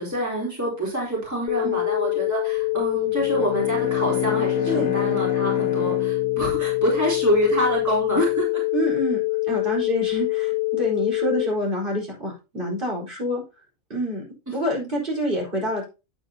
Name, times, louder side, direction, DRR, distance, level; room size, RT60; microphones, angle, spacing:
voice 1, 0.0-8.6 14.5-14.6, right 1 dB, 10° right, -4 dB, 3.9 m, -26 dB
sound 1, 1.5-11.5, left 24 dB, 85° left, 1.2 m, -25 dB
Bowed string instrument, 3.1-7.7, left 6 dB, 55° left, 1.2 m, -31 dB
voice 2, 8.7-9.2 9.5-13.4 13.9-14.2 14.5-15.9, equal, 35° right, -3 dB, 4.7 m, -27 dB
9.7 x 8.8 x 2.8 m, 0.29 s
omnidirectional pair, 1.5 m